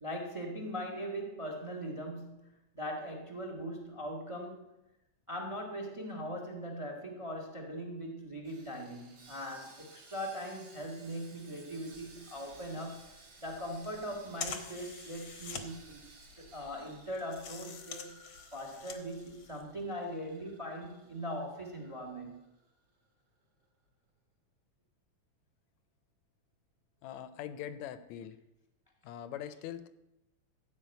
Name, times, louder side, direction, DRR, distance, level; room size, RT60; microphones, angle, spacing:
voice 1, 0.0-4.7 5.3-13.1 13.4-16.0 16.3-18.2 18.5-22.4, equal, 20° right, 3 dB, 0.8 m, -40 dB
Sawing, 8.4-22.7 23.0-23.1 23.6-23.7, right 3 dB, 60° right, 3.4 m, -58 dB
sound 1, 11.9-19.8, left 6 dB, 60° left, 1.3 m, -46 dB
voice 2, 27.0-28.4 29.0-29.9, left 10 dB, 75° left, 12 dB, 1.9 m, -42 dB
14.5 x 5.3 x 8.1 m, 0.93 s
omnidirectional pair, 3.5 m